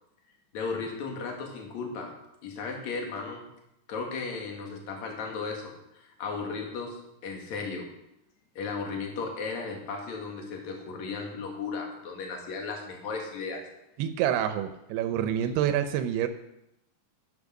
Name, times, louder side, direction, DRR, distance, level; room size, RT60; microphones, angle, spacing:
voice 1, 0.5-3.4 3.9-7.0 7.2-7.9 8.5-13.6, left 4 dB, 50° left, 1 dB, 3.0 m, -35 dB
voice 2, 14.0-16.3, right 10 dB, 90° right, 9 dB, 2.8 m, -27 dB
10.5 x 9.5 x 6.4 m, 0.84 s
omnidirectional pair, 4.5 m